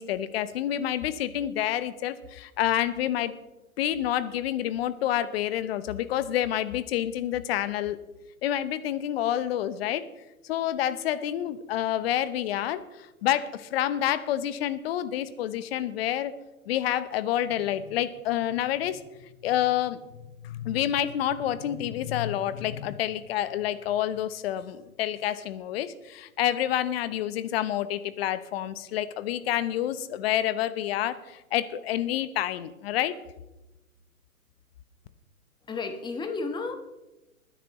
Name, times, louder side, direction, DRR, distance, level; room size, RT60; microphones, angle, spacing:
voice 1, 0.0-3.4 3.8-8.0 8.4-10.1 10.4-16.3 16.7-19.0 19.4-20.0 20.4-33.2, left 11 dB, 45° left, 14 dB, 0.9 m, -28 dB
voice 2, 35.7-36.8, left 4 dB, 10° left, 6 dB, 1.2 m, -32 dB
20.5 x 10.5 x 3.0 m, 1.0 s
hypercardioid pair, 125°, 43 cm